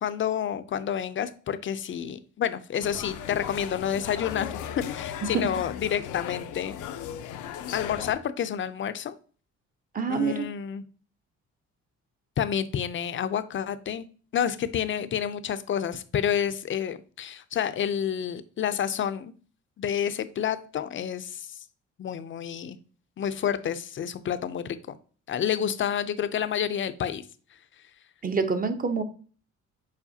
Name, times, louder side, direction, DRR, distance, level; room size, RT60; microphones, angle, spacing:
voice 1, 0.0-6.7 7.7-9.1 10.1-10.8 12.4-14.0 14.3-19.3 19.8-21.6 22.0-22.8 23.2-24.8 25.3-27.2, left 9 dB, 40° left, 12 dB, 0.5 m, -29 dB
sound 1, 2.8-8.1, left 9 dB, 85° left, 0.6 m, -37 dB
voice 2, 9.9-10.5 28.2-29.0, right 5 dB, 30° right, 9 dB, 0.7 m, -26 dB
7.2 x 4.7 x 2.8 m, 0.41 s
cardioid pair, 115°, 29 cm